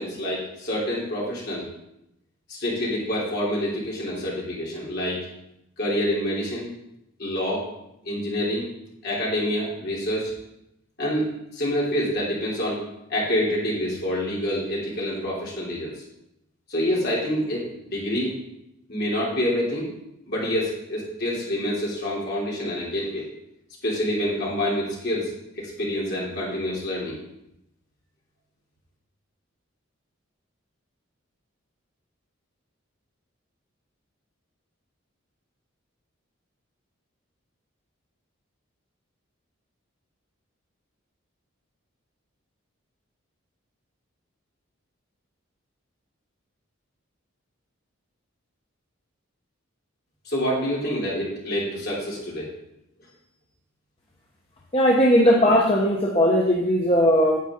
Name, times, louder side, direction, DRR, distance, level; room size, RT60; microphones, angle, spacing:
voice 1, 0.0-1.7 2.5-5.2 5.8-6.7 7.2-7.7 8.0-8.6 9.0-10.3 11.0-12.8 13.1-15.9 16.7-18.3 18.9-19.9 20.3-23.3 23.8-27.2 50.2-52.5, equal, 50° left, -5 dB, 3.3 m, -27 dB
voice 2, 54.7-57.4, equal, 25° left, -3 dB, 0.9 m, -18 dB
9.6 x 8.1 x 3.8 m, 0.82 s
head